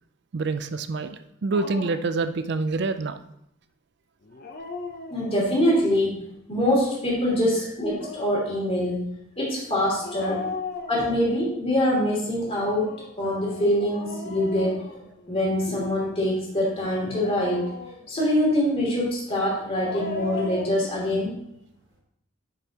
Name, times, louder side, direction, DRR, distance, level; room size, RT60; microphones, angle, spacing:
voice 1, 0.3-3.2 10.5-10.6, right 3 dB, 55° right, 11 dB, 0.4 m, -27 dB
Dog, 1.5-2.1 4.2-5.6 7.7-8.5 10.0-11.5 12.4-15.6 16.8-18.2 19.6-20.9, left 3 dB, 45° left, 0.7 m, -37 dB
voice 2, 5.1-9.1 9.4-10.4 10.9-12.9 13.2-14.8 15.3-17.7 18.1-21.3, left 1 dB, 30° left, -5 dB, 2.9 m, -24 dB
10.5 x 5.4 x 2.9 m, 0.75 s
head